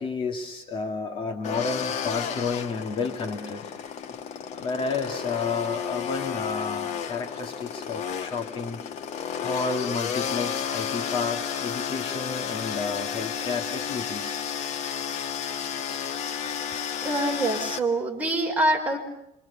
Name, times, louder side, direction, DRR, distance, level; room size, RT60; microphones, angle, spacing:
voice 1, 0.0-3.7 4.5-8.8 9.4-14.4 15.8-16.1, left 4 dB, 45° left, 4 dB, 2.5 m, -31 dB
sound 1, 1.4-17.8, left 8 dB, 65° left, 1.7 m, -32 dB
voice 2, 17.0-19.0, right 1 dB, 10° right, 0 dB, 5.1 m, -25 dB
27.0 x 25.5 x 7.0 m, 0.82 s
cardioid pair, 135°, 13 cm